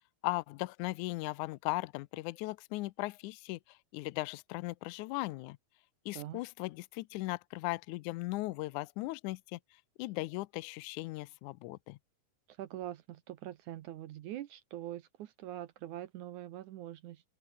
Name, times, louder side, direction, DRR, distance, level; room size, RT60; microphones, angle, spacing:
voice 1, 0.2-5.6 6.1-9.6 10.0-12.0, left 20 dB, 80° left, 1.9 m, -38 dB
voice 2, 12.6-17.2, right 13 dB, 75° right, 2.3 m, -43 dB
open air
omnidirectional pair, 3.7 m